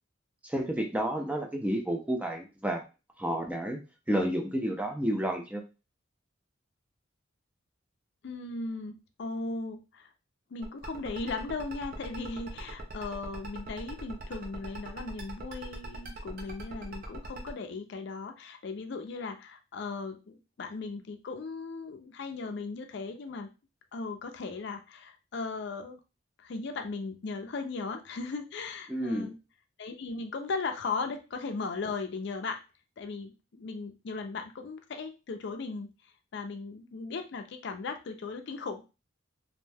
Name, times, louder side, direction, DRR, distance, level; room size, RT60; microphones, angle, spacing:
voice 1, 0.4-2.8 3.2-3.8 4.1-5.6 28.9-29.3, right 1 dB, 5° right, 3 dB, 0.3 m, -30 dB
voice 2, 8.2-10.1 10.5-23.5 23.9-26.0 26.4-29.3 29.8-32.6 33.0-35.9 36.3-38.8, left 4 dB, 60° left, 7 dB, 0.4 m, -37 dB
sound 1, 10.6-17.5, right 3 dB, 50° right, 0.6 m, -43 dB
2.6 x 2.2 x 3.3 m, 0.30 s
head